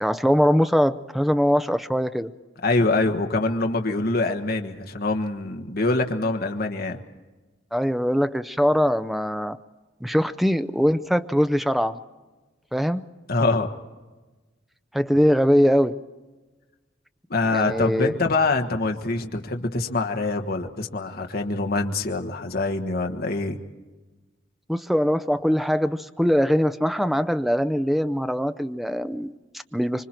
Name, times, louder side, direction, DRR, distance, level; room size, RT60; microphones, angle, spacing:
voice 1, 0.0-2.3 7.7-9.6 10.0-12.0 12.7-13.0 14.9-16.0 17.5-18.2 24.7-30.1, equal, ahead, 11 dB, 0.6 m, -22 dB
voice 2, 2.6-7.0 13.3-13.7 17.3-23.6, left 3 dB, 55° left, 4 dB, 1.4 m, -24 dB
25.5 x 24.5 x 4.5 m, 1.2 s
head